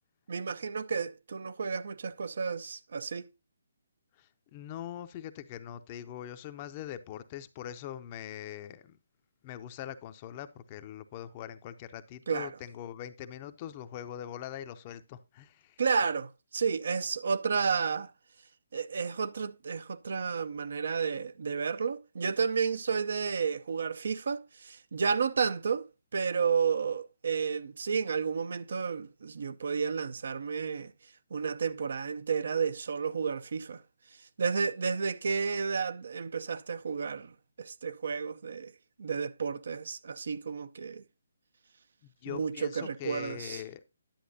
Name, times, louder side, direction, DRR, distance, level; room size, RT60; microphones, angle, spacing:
voice 1, 0.3-3.3 12.3-12.6 15.8-18.1 18.7-30.9 31.3-33.8 34.4-38.7 39.0-41.0 42.3-43.6, right 5 dB, 65° right, 0.5 m, -31 dB
voice 2, 4.5-8.8 9.4-15.7 42.2-43.8, left 11 dB, 30° left, 0.6 m, -42 dB
10.5 x 7.6 x 2.7 m
hypercardioid pair, 150°, 0 cm